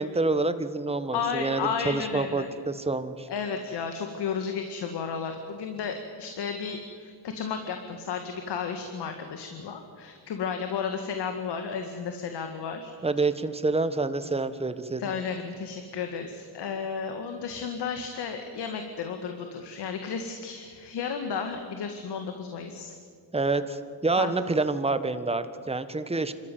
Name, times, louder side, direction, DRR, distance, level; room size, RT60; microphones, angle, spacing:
voice 1, 0.0-3.3 13.0-15.0 23.3-26.3, right 3 dB, 15° right, 11 dB, 1.4 m, -27 dB
voice 2, 1.1-2.5 3.3-12.9 15.0-22.9 24.2-24.3, left 6 dB, 65° left, 6 dB, 1.9 m, -33 dB
26.0 x 14.0 x 9.4 m, 2.2 s
cardioid pair, 90°, 43 cm